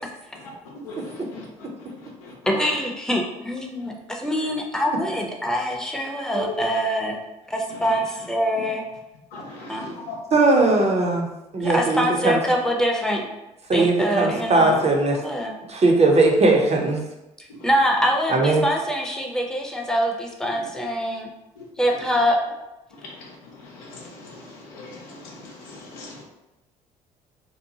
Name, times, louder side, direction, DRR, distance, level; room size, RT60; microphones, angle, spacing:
voice 1, 2.5-7.2 7.5-8.8 9.7-9.9 11.6-13.2 13.7-15.5 17.4-21.3 21.8-22.4, equal, 5° left, 0 dB, 0.6 m, -24 dB
voice 2, 9.3-10.2 23.9-24.3 24.8-25.0 25.7-26.1, left 4 dB, 85° left, -2 dB, 0.6 m, -38 dB
voice 3, 10.3-11.3 11.5-12.4 13.7-15.2 15.7-17.0 18.3-18.6, right 2 dB, 35° right, 1 dB, 0.7 m, -19 dB
2.7 x 2.2 x 2.7 m, 0.96 s
hypercardioid pair, 50°, 19 cm